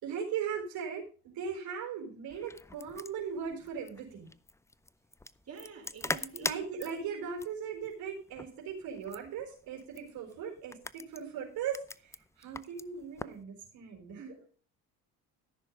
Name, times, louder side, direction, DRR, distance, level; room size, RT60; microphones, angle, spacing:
voice 1, 0.0-4.3 6.4-14.3, right 7 dB, 70° right, 4.1 m, -38 dB
sound 1, 2.3-13.4, left 2 dB, 10° left, 0.5 m, -43 dB
voice 2, 5.5-6.5 14.2-14.6, right 5 dB, 40° right, 4.5 m, -47 dB
14.0 x 6.5 x 5.3 m
supercardioid pair, 70°, 38 cm